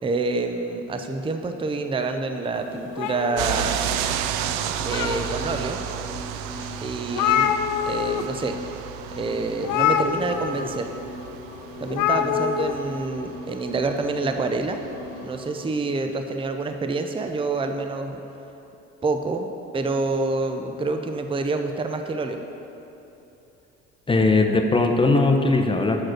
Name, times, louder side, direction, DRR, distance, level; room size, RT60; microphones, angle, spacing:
voice 1, 0.0-3.8 4.8-5.8 6.8-7.6 7.9-8.6 9.2-10.9 11.8-14.8 15.2-18.2 19.0-22.4, right 3 dB, 15° right, 6 dB, 0.6 m, -27 dB
sound 1, 2.4-15.7, left 2 dB, 35° left, 1.3 m, -40 dB
sound 2, 3.0-4.2 4.6-5.5 6.1-6.2 6.6-6.7 6.9-8.2 8.5-8.7 9.6-10.7 11.9-12.7, left 9 dB, 60° left, 0.6 m, -25 dB
sound 3, 3.4-15.4, right 10 dB, 75° right, 0.5 m, -32 dB
voice 2, 24.1-26.0, left 3 dB, 15° left, 4 dB, 0.9 m, -19 dB
6.2 x 6.0 x 6.5 m, 2.9 s
hypercardioid pair, 65°, 35 cm